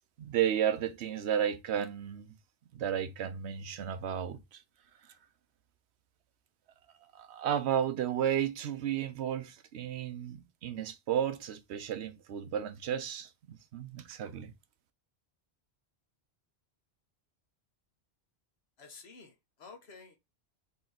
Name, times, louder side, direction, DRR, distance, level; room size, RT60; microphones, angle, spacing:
voice 1, 0.2-2.3 2.7-4.6 7.1-14.5, right 9 dB, 85° right, 0.9 m, -33 dB
voice 2, 18.8-20.2, left 4 dB, 75° left, 1.3 m, -51 dB
4.1 x 2.9 x 3.9 m
omnidirectional pair, 1.1 m